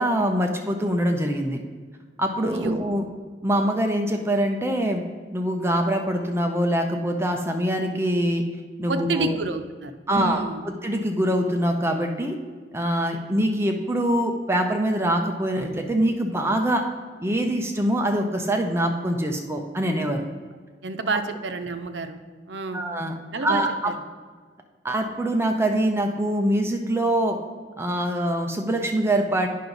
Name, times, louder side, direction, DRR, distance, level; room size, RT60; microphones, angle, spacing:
voice 1, 0.0-1.6 2.2-3.1 3.4-5.0 5.3-8.4 8.8-9.4 10.1-12.4 12.7-16.9 17.2-20.2 22.7-23.1 23.4-23.9 24.8-27.4 27.8-29.5, right 1 dB, 15° right, 3 dB, 0.6 m, -24 dB
voice 2, 2.5-2.8 8.9-10.7 20.8-22.2 22.5-22.8 23.3-23.9, right 3 dB, 85° right, 8 dB, 0.7 m, -29 dB
9.3 x 5.9 x 3.9 m, 1.6 s
head